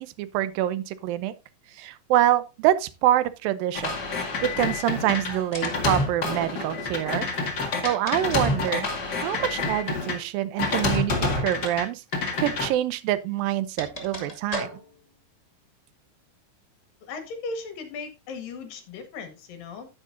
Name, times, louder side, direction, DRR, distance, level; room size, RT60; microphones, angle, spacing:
voice 1, 0.0-1.3 1.7-4.0 4.2-7.3 7.5-8.9 9.2-12.0 12.4-14.7, right 13 dB, 90° right, 2.5 m, -26 dB
sound 1, 3.7-10.1 10.6-11.8 12.1-12.7, left 3 dB, 35° left, 2.0 m, -28 dB
sound 2, 4.8-5.1 5.5-5.9 7.4-8.9 10.7-11.0 11.5-11.8 12.0-12.1 13.1-15.1, equal, 20° left, 1.0 m, -38 dB
voice 2, 17.0-19.9, left 4 dB, 80° left, 3.4 m, -37 dB
10.0 x 10.0 x 2.6 m
omnidirectional pair, 4.0 m